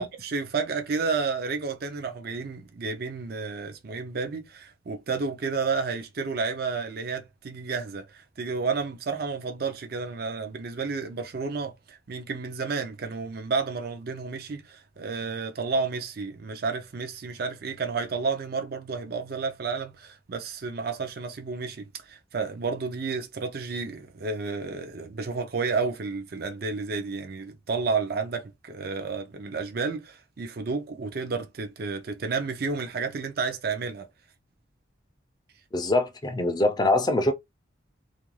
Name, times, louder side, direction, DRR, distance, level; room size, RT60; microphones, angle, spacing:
voice 1, 0.0-34.1, right 4 dB, 50° right, 0.5 m, -31 dB
voice 2, 35.7-37.3, left 2 dB, 20° left, 0.4 m, -23 dB
2.5 x 2.2 x 3.1 m
head